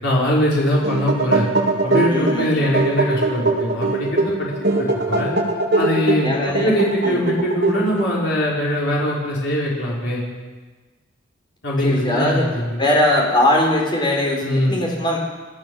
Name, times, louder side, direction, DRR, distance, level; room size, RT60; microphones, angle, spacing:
voice 1, 0.0-1.5 1.8-4.5 4.8-5.3 5.8-6.3 6.6-10.2 11.6-12.8 14.4-14.8, left 1 dB, 55° left, -4 dB, 5.2 m, -21 dB
sound 1, 0.6-8.2, right 2 dB, 55° right, 2.8 m, -21 dB
voice 2, 2.1-2.5 6.2-6.7 7.0-7.3 11.8-12.5 12.8-15.2, left 1 dB, 20° left, -1 dB, 4.6 m, -20 dB
26.5 x 14.0 x 7.1 m, 1.3 s
head